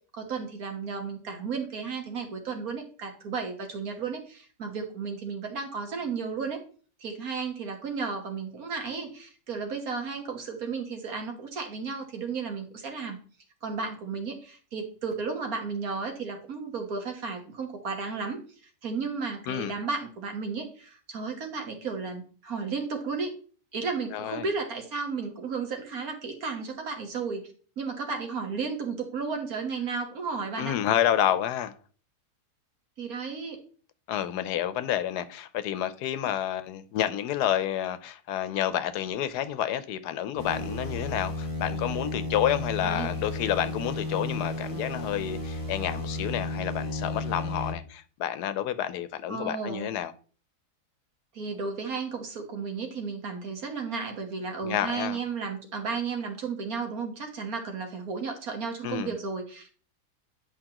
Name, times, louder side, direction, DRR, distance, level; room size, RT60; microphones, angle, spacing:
voice 1, 0.1-6.6 7.0-13.2 13.6-18.4 18.8-23.3 23.7-27.4 27.8-30.8 33.0-33.6 42.8-43.1 49.3-49.9 51.4-59.7, right 5 dB, 60° right, 1.8 m, -33 dB
voice 2, 24.1-24.5 30.6-31.7 34.1-50.1 54.6-55.2 58.8-59.2, left 11 dB, 80° left, 1.2 m, -29 dB
sound 1, 40.4-47.7, left 2 dB, 15° left, 1.0 m, -33 dB
9.8 x 5.1 x 2.9 m
omnidirectional pair, 1.7 m